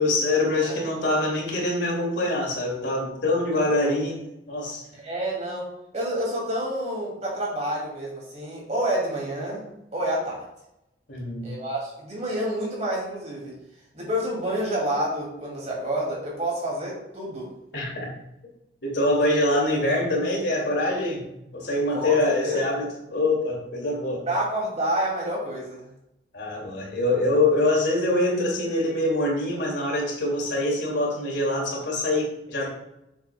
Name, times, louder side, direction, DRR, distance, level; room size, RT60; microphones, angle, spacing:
voice 1, 0.0-4.2 4.5-4.8 11.1-11.5 17.7-18.1 18.8-24.2 26.3-32.7, left 2 dB, 75° left, -2 dB, 2.5 m, -24 dB
voice 2, 5.0-10.5 11.4-13.5 13.9-17.5 21.9-22.6 24.3-25.9, right 1 dB, 35° right, -3 dB, 2.5 m, -29 dB
8.0 x 7.0 x 2.3 m, 0.86 s
head